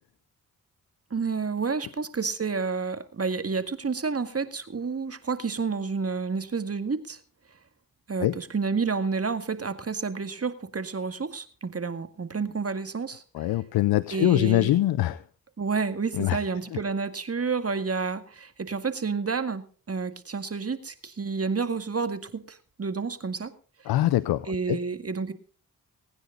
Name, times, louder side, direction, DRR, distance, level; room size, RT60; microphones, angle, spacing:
voice 1, 1.1-7.2 8.1-13.5 14.1-14.7 15.6-23.5 23.8-23.9 24.5-25.3, right 5 dB, 40° right, 10 dB, 2.0 m, -30 dB
voice 2, 13.3-15.2 16.1-16.4 23.9-24.8, left 15 dB, 90° left, 17 dB, 0.6 m, -23 dB
20.5 x 9.8 x 3.9 m, 0.40 s
supercardioid pair, 45°, 35 cm